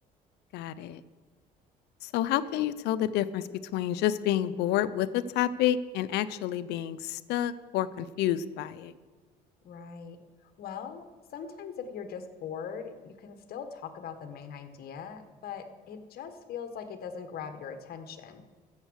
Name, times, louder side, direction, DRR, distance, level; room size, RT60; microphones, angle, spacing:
voice 1, 0.5-1.0 2.0-8.9, left 11 dB, 85° left, 15 dB, 0.6 m, -29 dB
voice 2, 9.6-10.2 10.6-11.0 11.3-18.4, left 7 dB, 65° left, 8 dB, 1.4 m, -41 dB
14.5 x 7.3 x 6.4 m, 1.4 s
cardioid pair, 110°, 17 cm